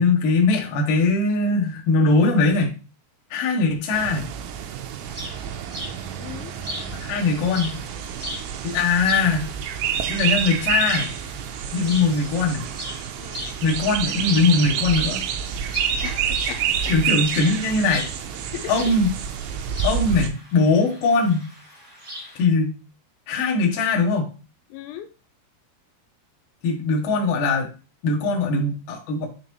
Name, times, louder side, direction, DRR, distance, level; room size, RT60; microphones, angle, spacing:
voice 1, 0.0-2.7 3.3-4.3 6.9-7.8 8.6-9.5 10.1-11.1 11.7-12.6 13.6-15.2 16.9-18.1 18.7-19.1 19.8-21.5 22.4-22.8 23.3-24.3 26.6-27.7 28.0-29.3, left 3 dB, 65° left, 0 dB, 2.4 m, -21 dB
sound 1, 3.9-20.3, right 8 dB, 80° right, 2.7 m, -28 dB
sound 2, 5.0-22.4, equal, 30° right, 1.2 m, -38 dB
voice 2, 6.2-6.5 13.2-13.5 16.0-16.6 18.5-18.7 24.7-25.1 28.2-28.3, left 12 dB, 85° left, 8 dB, 2.9 m, -37 dB
10.0 x 3.8 x 3.1 m, 0.33 s
omnidirectional pair, 5.4 m